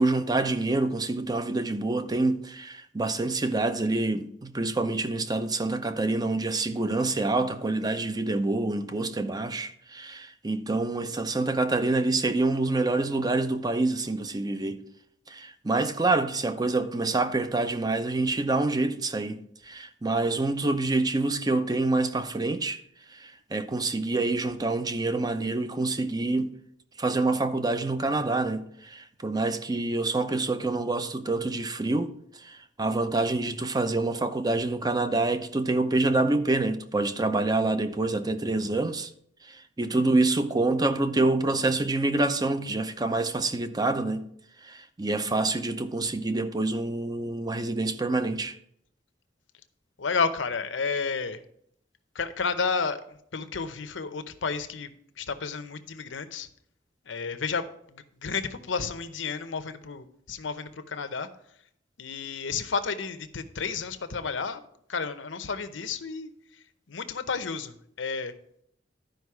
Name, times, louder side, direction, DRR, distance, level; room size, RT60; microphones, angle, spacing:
voice 1, 0.0-14.8 15.3-22.8 23.1-26.5 27.0-39.1 39.4-44.3 44.6-48.6, right 2 dB, 20° right, 0.5 m, -27 dB
voice 2, 50.0-51.4 52.1-54.9 55.2-56.5 57.1-61.3 62.0-64.6 64.9-66.3 66.9-68.3, left 5 dB, 80° left, 0.7 m, -31 dB
11.5 x 5.2 x 4.7 m
head